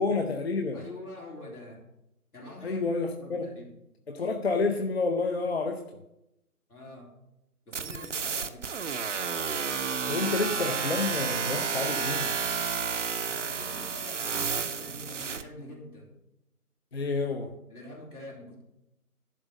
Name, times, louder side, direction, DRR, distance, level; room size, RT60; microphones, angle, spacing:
voice 1, 0.0-0.8 2.6-3.5 4.1-5.8 10.1-12.3 16.9-17.5, left 3 dB, 45° left, 0.7 m, -29 dB
voice 2, 0.7-1.8 2.3-2.8 3.2-3.7 6.7-7.1 7.7-8.7 13.2-16.1 17.7-18.6, left 1 dB, 75° left, 3.6 m, -45 dB
sound 1, 7.7-15.4, right 6 dB, 55° right, 0.7 m, -31 dB
11.5 x 3.9 x 6.5 m
figure-of-eight pair, 150°, 45 cm